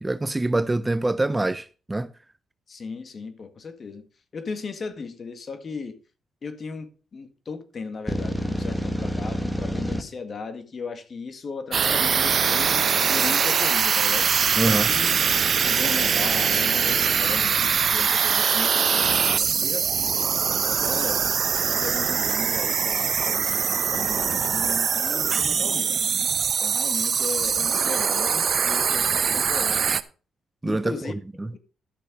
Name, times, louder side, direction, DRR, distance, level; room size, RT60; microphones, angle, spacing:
voice 1, 0.0-2.1 14.6-14.9 30.6-30.9 31.4-31.5, right 2 dB, 15° right, 0.5 m, -24 dB
voice 2, 2.7-4.1 4.3-6.0 6.4-14.3 14.9-15.1 15.5-20.2 20.6-21.2 21.7-25.9 26.6-29.9 30.6-31.1 31.5-31.6, left 4 dB, 40° left, 1.8 m, -36 dB
sound 1, 8.1-10.0, equal, 5° left, 1.5 m, -28 dB
sound 2, 11.7-30.0, right 6 dB, 50° right, 0.7 m, -22 dB
12.0 x 6.6 x 5.2 m
cardioid pair, 90°, 0 cm